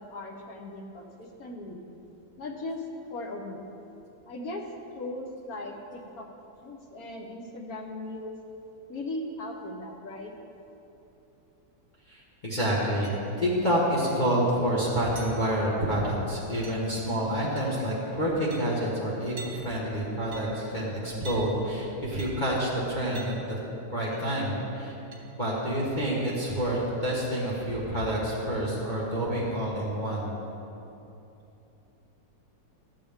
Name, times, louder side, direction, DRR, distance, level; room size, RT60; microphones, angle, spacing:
voice 1, 0.0-1.8 2.4-2.8 3.1-3.6 4.3-4.7 4.9-6.3 6.6-8.4 8.9-10.3, left 2 dB, 60° left, 2 dB, 1.2 m, -38 dB
voice 2, 12.1-23.6 23.9-25.0 25.3-30.4, equal, 25° left, -6 dB, 1.5 m, -28 dB
sound 1, 13.0-13.5 14.0-14.2 14.4-14.5 15.2-15.3 16.6-17.0 17.6-17.8 18.1-18.2 18.5-18.6 19.4-19.5 20.3-20.5 21.2-21.4 22.2-22.4 23.1-23.3 24.1-24.2 25.1-25.2, right 4 dB, 40° right, 1.5 m, -43 dB
13.5 x 7.9 x 3.5 m, 3.0 s
omnidirectional pair, 2.0 m